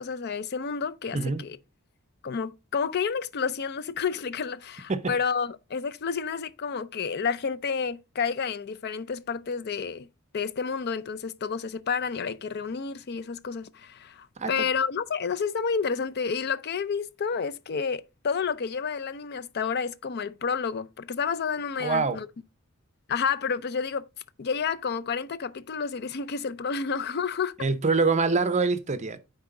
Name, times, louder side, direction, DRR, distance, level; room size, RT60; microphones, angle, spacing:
voice 1, 0.0-1.6 2.2-10.1 10.3-22.3 23.1-24.1 24.4-27.6, left 6 dB, 50° left, 0.5 m, -30 dB
voice 2, 1.1-1.4 4.9-5.1 14.4-14.5 21.8-22.2 27.6-29.2, right 4 dB, 35° right, 0.6 m, -25 dB
9.5 x 4.1 x 3.8 m
head